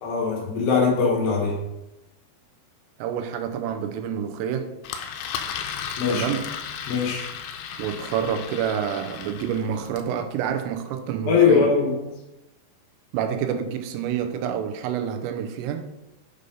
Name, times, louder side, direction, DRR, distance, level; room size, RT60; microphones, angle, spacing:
voice 1, 0.0-1.6 6.0-6.2 6.9-7.3 11.3-12.0, left 5 dB, 65° left, -2 dB, 3.3 m, -21 dB
voice 2, 3.0-4.7 6.1-6.5 7.8-11.7 13.1-15.9, right 8 dB, 90° right, 6 dB, 3.3 m, -28 dB
Engine, 4.8-10.1, left 7 dB, 85° left, 3.3 m, -34 dB
8.3 x 5.4 x 5.2 m, 0.94 s
omnidirectional pair, 5.8 m